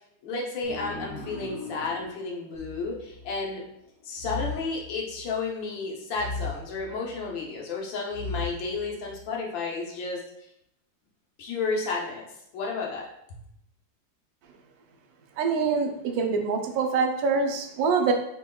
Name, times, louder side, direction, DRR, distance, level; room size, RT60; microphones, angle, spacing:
voice 1, 0.2-3.6 4.0-10.2 11.4-12.3 12.5-13.4, left 4 dB, 85° left, -2 dB, 1.6 m, -32 dB
sound 1, 0.6-3.8, left 1 dB, 30° right, 1.4 m, -42 dB
sound 2, 2.5-3.5 4.2-5.5 6.1-7.4 8.1-9.3, left 3 dB, 5° left, 0.7 m, -37 dB
voice 2, 15.4-15.9 16.2-18.1, right 5 dB, 70° right, 4 dB, 0.9 m, -24 dB
5.0 x 3.7 x 2.2 m, 0.78 s
omnidirectional pair, 2.0 m